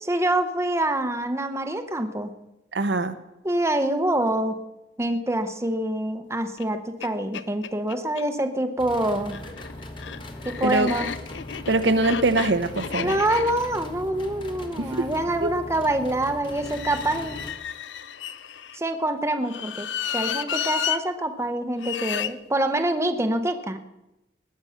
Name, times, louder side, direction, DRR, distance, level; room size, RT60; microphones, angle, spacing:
voice 1, 0.1-2.3 3.4-4.6 5.0-9.4 10.4-11.1 13.0-17.4 18.7-19.9 20.1-23.8, right 1 dB, 15° right, 7 dB, 0.9 m, -26 dB
voice 2, 2.7-3.2 10.6-10.9 11.7-13.2 15.0-15.1 15.4-15.5, right 2 dB, 75° right, 10 dB, 0.9 m, -22 dB
sound 1, 6.6-6.7 7.0-7.1 7.3-8.3 9.2-15.3 16.5-18.8 19.4-21.0 21.8-22.3, left 8 dB, 90° left, 0.7 m, -33 dB
sound 2, 8.8-17.5, left 1 dB, 30° left, 1.3 m, -39 dB
20.0 x 8.7 x 5.8 m, 0.95 s
head